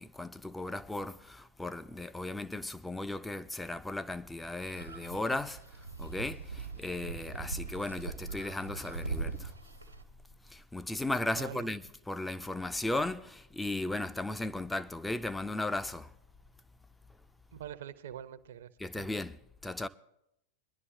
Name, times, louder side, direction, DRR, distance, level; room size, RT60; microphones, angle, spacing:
voice 1, 0.0-5.6 6.0-9.5 10.5-16.1 18.8-19.9, left 2 dB, 5° left, 0.4 m, -36 dB
sound 1, 4.6-10.0, right 4 dB, 85° right, 1.2 m, -41 dB
voice 2, 11.4-11.7 17.5-19.1, right 10 dB, 60° right, 0.7 m, -44 dB
22.5 x 11.0 x 2.7 m
figure-of-eight pair, 90°, 0 cm